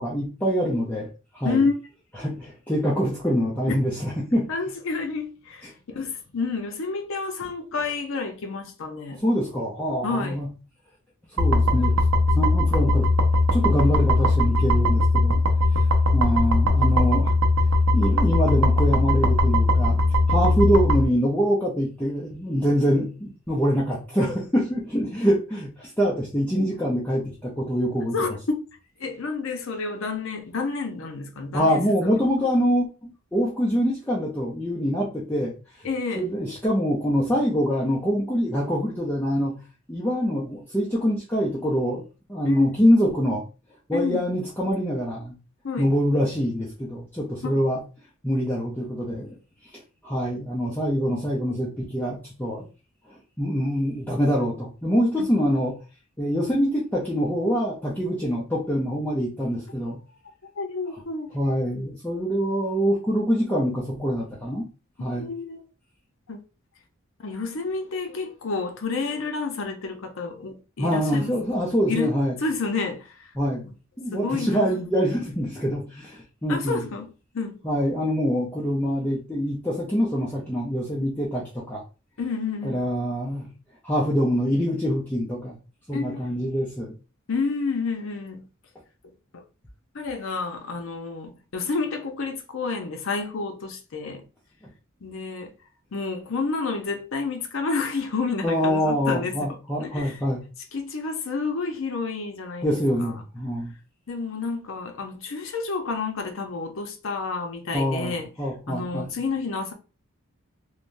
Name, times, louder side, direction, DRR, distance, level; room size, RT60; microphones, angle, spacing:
voice 1, 0.0-1.7 2.2-4.5 9.1-10.5 11.3-12.0 12.3-13.1 13.5-15.4 15.7-15.8 16.1-17.3 17.9-28.1 31.5-35.5 36.1-39.6 39.9-43.4 43.9-45.4 45.8-47.8 48.2-49.3 49.7-52.7 53.4-55.8 56.2-60.0 61.3-64.7 65.0-65.3 70.8-72.4 73.4-73.7 74.0-76.9 77.6-81.8 82.6-83.5 83.8-85.6 85.9-87.0 98.4-100.4 102.6-103.7 107.7-109.1, equal, 10° left, 0.6 m, -25 dB
voice 2, 1.4-1.8 3.7-3.8 4.5-9.2 10.0-10.4 28.1-28.6 29.0-32.3 35.8-36.3 42.4-42.7 43.9-44.2 45.6-45.9 47.4-47.6 55.2-55.3 60.4-61.4 65.1-65.6 66.3-66.4 67.2-71.4 71.9-73.3 74.1-74.8 76.5-77.1 77.3-77.6 82.2-82.8 85.9-86.2 87.3-88.5 89.9-94.2 95.0-95.5 95.9-100.2 100.7-103.2 104.1-108.3 108.7-109.7, left 4 dB, 70° left, 0.6 m, -30 dB
sound 1, 11.4-21.0, left 2 dB, 85° right, 0.6 m, -20 dB
3.3 x 2.1 x 2.5 m
head